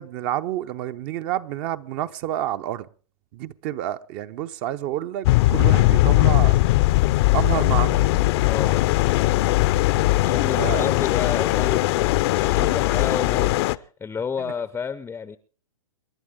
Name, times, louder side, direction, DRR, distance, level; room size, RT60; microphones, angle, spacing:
voice 1, 0.0-2.9 3.3-6.6 7.3-8.1 10.6-10.9, right 12 dB, 40° right, 0.9 m, -29 dB
sound 1, 5.2-13.8, left 18 dB, 50° left, 0.7 m, -19 dB
voice 2, 8.4-8.9 10.2-15.4, left 6 dB, 10° left, 0.6 m, -31 dB
28.5 x 11.0 x 3.7 m
hypercardioid pair, 115°, 18 cm